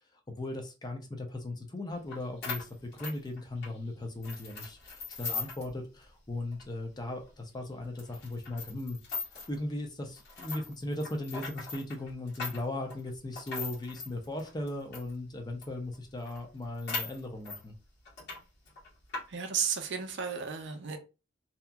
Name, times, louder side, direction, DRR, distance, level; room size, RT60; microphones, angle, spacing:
voice 1, 0.3-9.2 9.5-17.7, left 2 dB, 20° left, 0.5 m, -38 dB
sound 1, 2.1-2.2 2.4-3.8 4.2-5.7 6.0-6.1 6.5-6.6 7.2-7.3 8.0-9.6 10.2-15.1 15.6-15.7 15.9-16.0 16.3-17.6 18.1-18.4 18.7-19.2, left 4 dB, 55° left, 1.4 m, -39 dB
voice 2, 19.3-21.0, right 6 dB, 60° right, 0.5 m, -33 dB
2.7 x 2.4 x 2.3 m
head